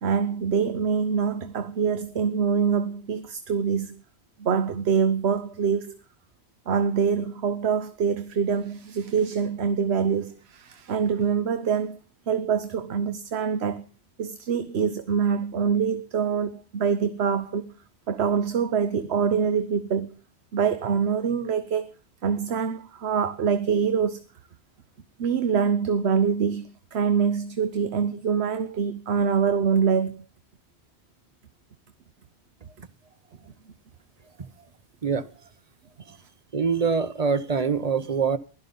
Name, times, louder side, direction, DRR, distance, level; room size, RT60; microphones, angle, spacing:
voice 1, 0.0-4.0 4.4-5.9 6.7-12.0 12.3-13.9 14.2-17.7 18.1-20.1 20.5-21.9 22.2-24.2 25.2-30.2, right 6 dB, 75° right, 1.1 m, -25 dB
voice 2, 36.5-38.4, right 5 dB, 40° right, 0.8 m, -24 dB
16.0 x 12.0 x 5.4 m
omnidirectional pair, 1.1 m